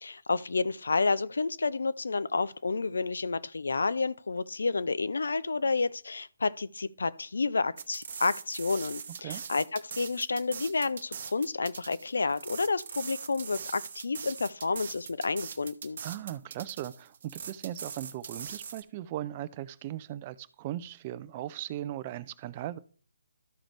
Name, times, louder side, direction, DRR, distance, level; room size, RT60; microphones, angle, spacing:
voice 1, 0.0-16.0, left 4 dB, 70° left, 0.5 m, -30 dB
sound 1, 7.8-18.8, right 6 dB, 50° right, 0.8 m, -41 dB
voice 2, 16.0-22.8, right 13 dB, 30° right, 0.4 m, -38 dB
13.5 x 5.0 x 3.1 m
figure-of-eight pair, 145°, 0 cm